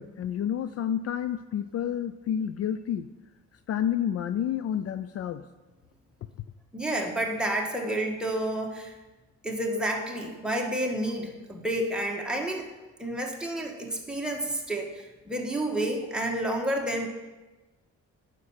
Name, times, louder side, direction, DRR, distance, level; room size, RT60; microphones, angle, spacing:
voice 1, 0.0-3.1 3.7-5.4, left 9 dB, 55° left, 12 dB, 0.4 m, -29 dB
voice 2, 6.7-8.9 9.4-12.6 13.0-17.1, right 1 dB, 5° right, 0 dB, 1.8 m, -30 dB
9.4 x 6.2 x 6.5 m, 1.2 s
cardioid pair, 90°, 30 cm